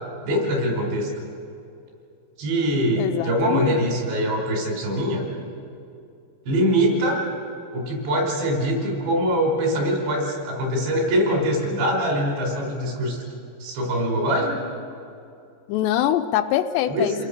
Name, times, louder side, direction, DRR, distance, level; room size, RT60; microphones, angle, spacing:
voice 1, 0.2-1.1 2.4-5.3 6.5-7.3 7.7-13.2 13.6-14.6 16.9-17.3, equal, 70° right, 1 dB, 6.7 m, -23 dB
voice 2, 3.0-3.9 15.7-17.2, left 11 dB, 80° left, 8 dB, 2.7 m, -24 dB
29.0 x 20.5 x 6.7 m, 2.6 s
omnidirectional pair, 5.2 m